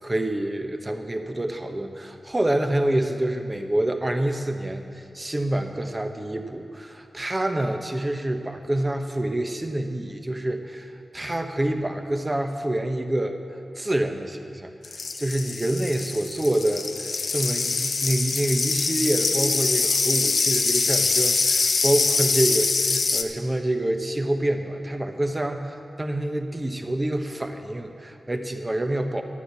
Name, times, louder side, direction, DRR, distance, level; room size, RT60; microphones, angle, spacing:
voice 1, 0.0-13.4 13.8-29.2, right 1 dB, 30° right, 5 dB, 1.2 m, -27 dB
sound 1, 14.8-23.2, left 4 dB, 70° left, 0.7 m, -24 dB
11.5 x 9.1 x 7.0 m, 2.5 s
cardioid pair, 40°, 0 cm